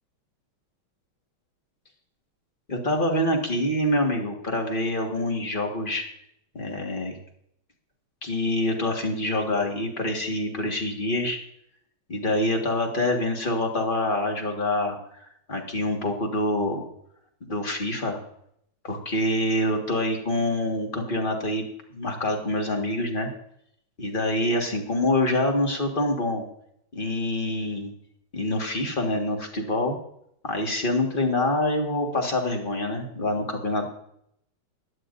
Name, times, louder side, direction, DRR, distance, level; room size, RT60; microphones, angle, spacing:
voice 1, 2.7-6.0 6.5-7.2 8.2-11.4 12.1-15.0 15.5-16.8 17.4-18.2 18.8-21.6 21.9-23.3 24.0-26.4 26.9-27.9 28.3-30.0 30.4-33.9, left 1 dB, 25° left, 2 dB, 1.7 m, -26 dB
16.5 x 12.0 x 2.6 m, 0.72 s
omnidirectional pair, 2.3 m